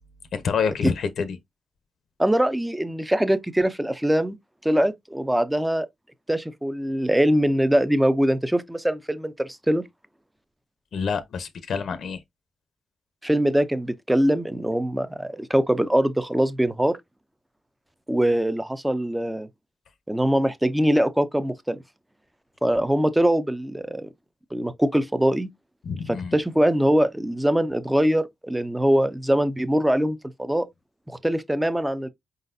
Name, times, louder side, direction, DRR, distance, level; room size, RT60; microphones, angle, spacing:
voice 1, 0.3-1.4 10.9-12.2 25.8-26.3, left 6 dB, 70° left, 0.9 m, -27 dB
voice 2, 2.2-4.4 4.6-5.9 6.3-9.8 13.2-17.0 18.1-19.5 20.1-21.8 22.6-24.1 24.5-25.5 26.1-30.7 31.1-32.1, equal, 5° right, 0.5 m, -22 dB
5.0 x 4.0 x 2.6 m
wide cardioid pair, 140°, 0 cm